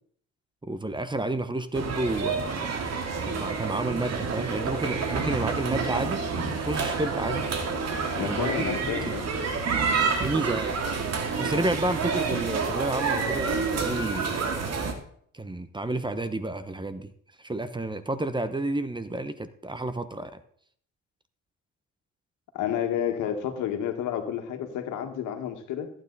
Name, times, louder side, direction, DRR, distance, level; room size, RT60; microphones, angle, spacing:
voice 1, 0.6-2.8 3.1-7.4 8.2-9.2 10.2-10.7 11.4-14.8 15.3-17.1 17.4-20.4, right 2 dB, 15° right, 12 dB, 0.9 m, -31 dB
sound 1, 1.7-14.9, right 5 dB, 60° right, 2.2 m, -28 dB
voice 2, 8.2-9.2 22.5-25.9, left 9 dB, 85° left, 5 dB, 1.8 m, -30 dB
14.5 x 9.1 x 4.1 m, 0.62 s
cardioid pair, 90°, 30 cm